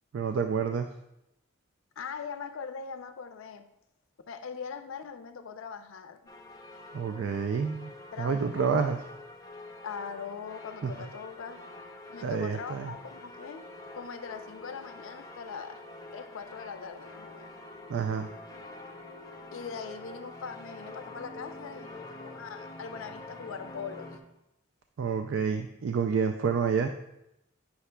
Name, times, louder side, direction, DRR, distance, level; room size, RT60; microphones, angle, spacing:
voice 1, 0.1-0.9 6.9-7.9 8.2-9.0 10.8-10.9 12.2-12.9 17.9-18.3 25.0-26.9, right 6 dB, 65° right, 6 dB, 0.3 m, -28 dB
voice 2, 2.0-3.6 4.3-6.2 8.1-8.9 9.8-11.6 12.1-13.7 13.9-15.8 16.1-17.5 19.5-24.1, left 6 dB, 75° left, 8 dB, 0.4 m, -41 dB
sound 1, 6.3-24.2, left 2 dB, 15° left, 0.5 m, -46 dB
9.7 x 5.7 x 2.2 m, 0.87 s
head